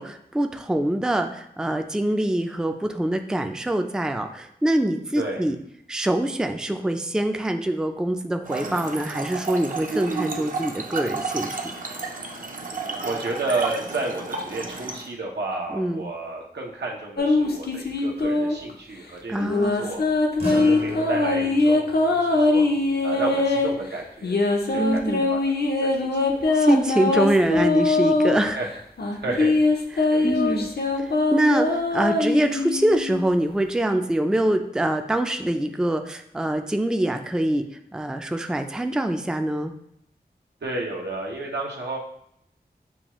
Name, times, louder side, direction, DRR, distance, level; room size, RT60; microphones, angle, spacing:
voice 1, 0.0-5.6 5.9-11.7 15.7-16.1 19.3-19.9 24.8-25.2 26.5-28.6 29.3-29.4 30.0-30.7 31.0-37.7 37.9-39.7, right 1 dB, 5° right, 6 dB, 0.3 m, -24 dB
Trickle dribble / Fill (with liquid), 8.4-15.1, right 4 dB, 55° right, 0.6 m, -31 dB
voice 2, 13.0-20.0 20.5-22.6 23.0-24.4 24.7-26.6 28.5-28.7 29.1-29.6 30.1-30.6 40.6-42.0, right 2 dB, 90° right, -1 dB, 0.8 m, -32 dB
sound 1, 17.2-18.7 19.4-23.7 24.2-28.4 29.0-33.2, left 3 dB, 70° left, 0.6 m, -22 dB
sound 2, 20.4-25.1, right 1 dB, 70° right, 1.4 m, -38 dB
7.0 x 2.3 x 3.0 m, 0.73 s
wide cardioid pair, 55°, 17 cm